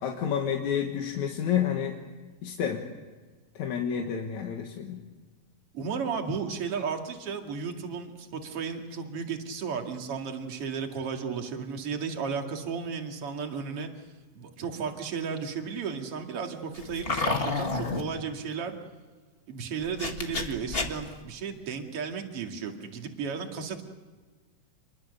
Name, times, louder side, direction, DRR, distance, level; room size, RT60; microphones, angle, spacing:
voice 1, 0.0-2.0 2.4-2.8 3.6-5.0, left 8 dB, 65° left, 2 dB, 2.8 m, -29 dB
voice 2, 5.7-13.9 14.3-18.8 19.5-23.8, right 6 dB, 45° right, 3 dB, 3.0 m, -34 dB
sound 1, 16.7-18.0 19.8-21.2, left 3 dB, 30° left, 1.1 m, -30 dB
27.5 x 22.0 x 6.7 m, 1.4 s
omnidirectional pair, 3.8 m